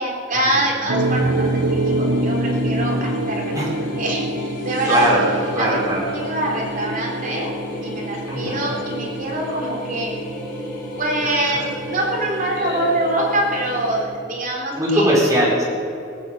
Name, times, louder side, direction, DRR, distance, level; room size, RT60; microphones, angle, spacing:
voice 1, 0.0-3.6 4.0-5.1 5.6-7.5 7.8-10.1 11.0-15.2, right 1 dB, 45° right, -2 dB, 3.8 m, -24 dB
sound 1, 0.9-14.2, right 2 dB, 85° right, 1.1 m, -27 dB
sound 2, 1.0-14.0, left 2 dB, 50° left, 3.8 m, -34 dB
voice 2, 4.8-5.2 5.5-6.0 8.3-8.6 11.2-11.6 12.6-12.9 14.8-15.6, right 1 dB, 20° right, -5 dB, 4.5 m, -20 dB
18.5 x 8.4 x 8.1 m, 2.6 s
head